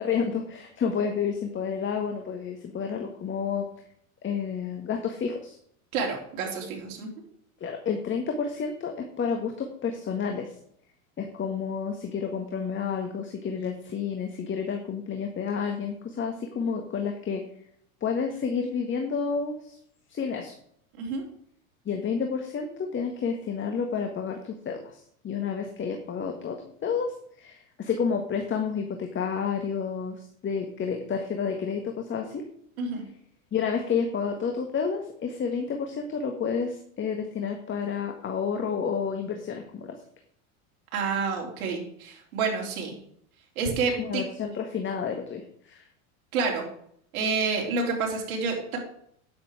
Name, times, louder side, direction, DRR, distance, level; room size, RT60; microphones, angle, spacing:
voice 1, 0.0-3.7 4.2-5.6 7.6-10.5 11.2-17.4 18.0-19.8 20.1-20.5 21.8-32.4 33.5-40.0 44.0-45.9, left 6 dB, 25° left, 3 dB, 1.6 m, -30 dB
voice 2, 5.9-7.1 21.0-21.2 32.8-33.0 40.9-42.9 43.6-44.2 46.3-46.6 47.1-48.8, right 4 dB, 70° right, 0 dB, 3.9 m, -28 dB
9.7 x 8.3 x 4.8 m, 0.66 s
hypercardioid pair, 100°, 43 cm